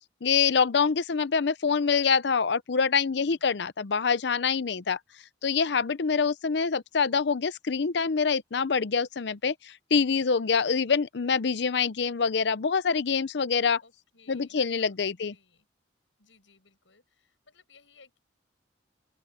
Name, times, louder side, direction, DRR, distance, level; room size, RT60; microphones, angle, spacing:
voice 1, 0.2-5.0 5.4-13.8 14.3-15.3, left 5 dB, 60° left, 0.6 m, -25 dB
voice 2, 3.2-3.5 5.4-5.9 10.2-10.5 11.2-11.5 13.8-15.7 16.2-18.2, left 4 dB, 85° left, 7.2 m, -61 dB
open air
head